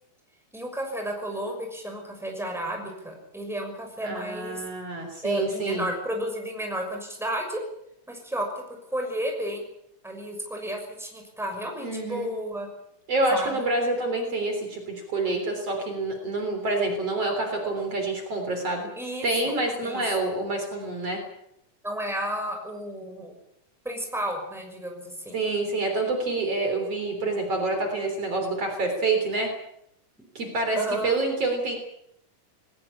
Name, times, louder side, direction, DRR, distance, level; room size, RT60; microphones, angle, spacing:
voice 1, 0.5-4.6 5.2-7.6 8.1-8.5 8.9-9.6 10.0-12.7 13.3-13.7 19.0-19.3 19.8-20.2 21.8-23.3 23.8-25.4 30.7-31.2, right 1 dB, ahead, 2 dB, 5.9 m, -32 dB
voice 2, 4.0-5.9 11.8-12.3 13.1-18.9 19.2-21.2 25.3-29.5 30.4-31.8, right 2 dB, 50° right, 4 dB, 4.4 m, -27 dB
20.0 x 19.5 x 8.6 m, 0.76 s
omnidirectional pair, 3.6 m